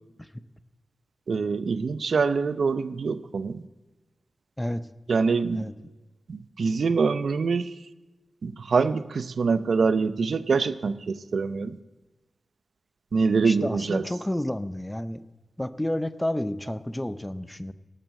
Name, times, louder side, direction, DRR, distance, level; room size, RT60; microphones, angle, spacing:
voice 1, 1.3-3.6 5.1-5.7 6.3-7.7 8.4-11.8 13.1-14.1, right 4 dB, 60° right, 14 dB, 0.7 m, -25 dB
voice 2, 13.4-15.2 15.6-17.7, left 1 dB, 10° left, 13 dB, 0.6 m, -30 dB
18.0 x 7.6 x 7.6 m, 1.2 s
wide cardioid pair, 170°, 0 cm